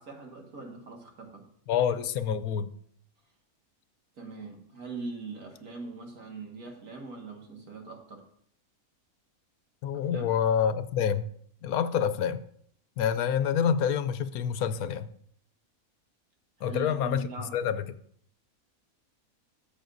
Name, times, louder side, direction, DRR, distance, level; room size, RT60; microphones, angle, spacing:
voice 1, 0.0-1.5 4.2-8.2 10.1-10.3 16.6-17.5, right 3 dB, 80° right, 1 dB, 2.2 m, -42 dB
voice 2, 1.7-2.7 9.8-11.3 11.6-12.4 13.0-15.1 16.6-17.2 17.5-17.8, left 8 dB, 80° left, 12 dB, 1.1 m, -27 dB
14.0 x 7.1 x 2.6 m, 0.63 s
omnidirectional pair, 1.5 m